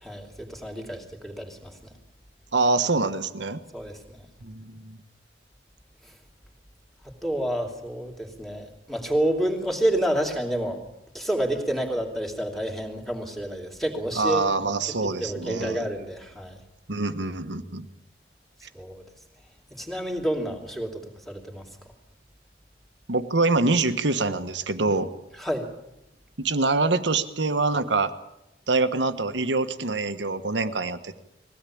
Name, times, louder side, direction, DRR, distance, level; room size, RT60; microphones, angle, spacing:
voice 1, 0.0-1.8 3.7-4.3 7.2-10.8 11.1-14.5 15.2-16.6 18.7-19.0 19.7-21.0 21.3-21.6 25.4-25.7, right 1 dB, ahead, 2 dB, 2.8 m, -29 dB
voice 2, 2.5-3.6 4.4-5.0 14.2-15.8 16.9-17.9 23.1-25.1 26.4-28.1 28.7-31.2, right 3 dB, 75° right, 9 dB, 1.4 m, -25 dB
21.5 x 17.0 x 8.6 m, 0.87 s
head